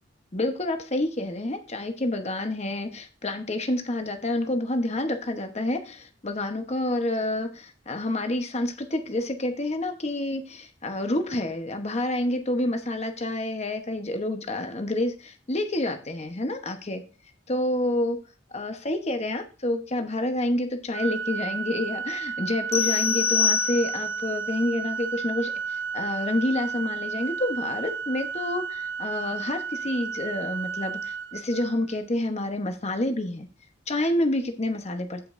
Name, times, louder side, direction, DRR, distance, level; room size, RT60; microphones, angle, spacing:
voice 1, 0.3-17.0 17.5-18.2 18.5-25.5 25.9-33.5 33.9-35.3, left 1 dB, 35° left, 6 dB, 1.0 m, -28 dB
Organ, 20.9-32.0, right 6 dB, 60° right, 0.4 m, -33 dB
sound 1, 22.7-24.3, left 6 dB, 15° left, 0.7 m, -25 dB
15.0 x 5.3 x 2.6 m, 0.35 s
head